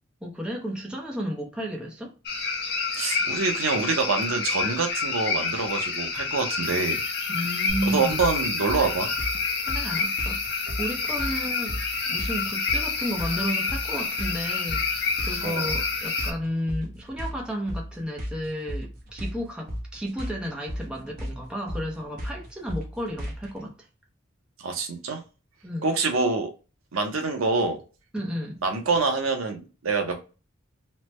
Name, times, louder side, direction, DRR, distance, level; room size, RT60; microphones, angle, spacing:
voice 1, 0.2-2.1 7.3-8.2 9.7-11.8 12.1-23.9 25.6-25.9 28.1-28.6, equal, 5° right, 0.6 m, -32 dB
sound 1, 2.3-16.3, left 4 dB, 50° left, 0.7 m, -28 dB
voice 2, 3.0-7.0 7.8-9.1 15.4-15.7 24.6-25.2 25.8-26.5 26.9-27.8 28.6-30.2, right 4 dB, 85° right, 0.7 m, -26 dB
sound 2, 7.7-23.6, equal, 45° right, 0.8 m, -35 dB
3.2 x 2.1 x 3.0 m
head